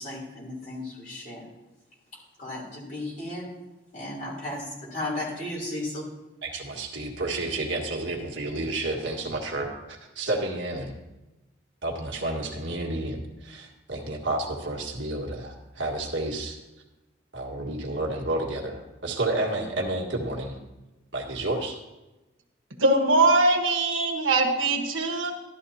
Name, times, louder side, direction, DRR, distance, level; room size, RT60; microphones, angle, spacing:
voice 1, 0.0-1.4 2.4-3.5 3.9-6.1, left 1 dB, 45° left, -4 dB, 3.5 m, -34 dB
voice 2, 6.4-10.9 11.8-16.6 17.3-20.5 21.1-21.8, right 2 dB, 70° right, 0 dB, 1.8 m, -30 dB
voice 3, 22.8-25.3, right 2 dB, 90° right, 3 dB, 1.4 m, -21 dB
13.0 x 11.5 x 2.9 m, 1.1 s
head